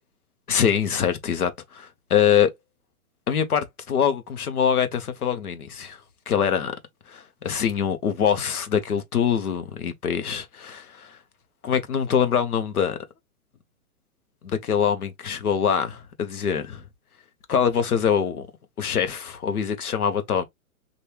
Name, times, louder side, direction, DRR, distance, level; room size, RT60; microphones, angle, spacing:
voice 1, 0.5-2.5 3.3-6.0 6.3-6.7 7.1-11.2 11.6-13.0 14.4-16.8 17.5-18.5 18.8-20.4, left 8 dB, 85° left, 1.0 m, -24 dB
3.3 x 2.6 x 2.8 m
hypercardioid pair, 150°, 43 cm